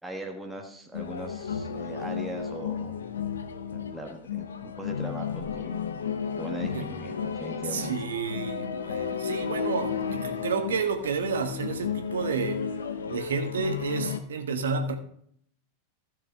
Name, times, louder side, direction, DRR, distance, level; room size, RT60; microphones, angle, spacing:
voice 1, 0.0-2.9 3.7-5.8 6.3-7.9, right 1 dB, 5° right, 1 dB, 1.3 m, -39 dB
sound 1, 0.9-14.2, left 7 dB, 70° left, 0.9 m, -33 dB
voice 2, 7.7-12.6 13.1-15.0, right 5 dB, 65° right, 7 dB, 1.2 m, -30 dB
15.5 x 5.9 x 3.6 m, 0.67 s
figure-of-eight pair, 90°, 0 cm